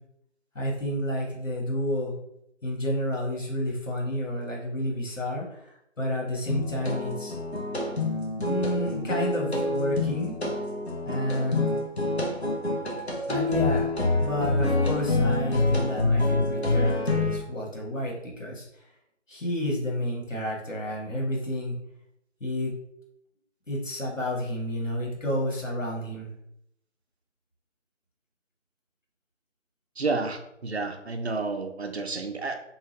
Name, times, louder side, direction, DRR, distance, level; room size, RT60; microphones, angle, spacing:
voice 1, 0.5-2.1 2.6-7.4 8.4-10.4 11.0-11.7 13.3-13.9 14.2-18.7 19.3-21.7 22.4-22.7 23.7-26.3, equal, 85° left, -3 dB, 1.4 m, -30 dB
sound 1, 6.5-17.4, left 2 dB, 55° left, 0.8 m, -26 dB
voice 2, 30.0-32.5, right 3 dB, 60° right, 5 dB, 0.5 m, -30 dB
2.8 x 2.4 x 2.9 m, 0.77 s
figure-of-eight pair, 170°, 37 cm